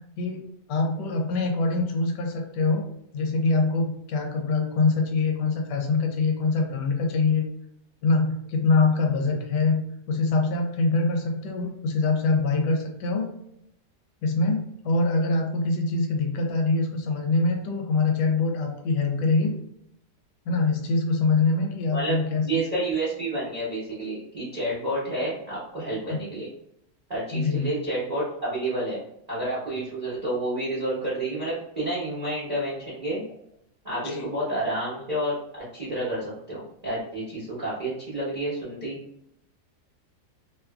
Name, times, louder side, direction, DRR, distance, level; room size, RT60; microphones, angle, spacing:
voice 1, 0.7-2.8 3.1-7.4 8.0-9.8 10.1-13.3 14.2-19.6 20.5-22.5 26.1-26.2 27.3-27.7 33.9-34.3, left 3 dB, 85° left, 2 dB, 1.2 m, -24 dB
voice 2, 21.9-26.5 27.1-29.0 29.3-33.2 33.8-39.0, right 1 dB, 30° right, -8 dB, 0.7 m, -30 dB
2.9 x 2.4 x 2.2 m, 0.77 s
omnidirectional pair, 1.8 m